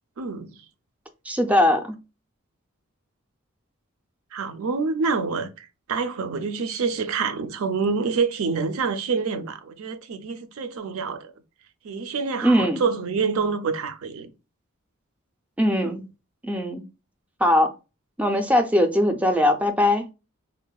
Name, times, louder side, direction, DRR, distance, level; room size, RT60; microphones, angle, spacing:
voice 1, 0.2-0.6 4.3-11.3 11.8-14.3 15.8-16.0, right 5 dB, 70° right, 0.4 m, -27 dB
voice 2, 1.3-1.9 12.4-12.8 15.6-16.0 16.4-16.8 17.4-17.7 18.2-20.1, left 1 dB, 5° right, 0.3 m, -20 dB
3.8 x 2.1 x 2.3 m
head